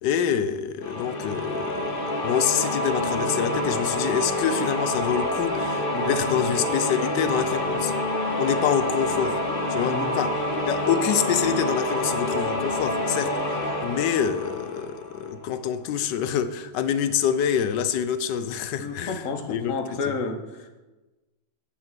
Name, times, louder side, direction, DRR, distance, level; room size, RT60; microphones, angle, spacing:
voice 1, 0.0-8.0 8.4-9.4 9.7-10.3 10.7-20.1, left 8 dB, 85° left, 12 dB, 1.3 m, -26 dB
sound 1, 0.8-15.4, left 1 dB, 35° left, 1.3 m, -27 dB
voice 2, 5.9-6.2 9.8-10.1 18.8-20.8, left 4 dB, 55° left, 6 dB, 1.2 m, -31 dB
8.1 x 6.3 x 7.4 m, 1.1 s
omnidirectional pair, 1.9 m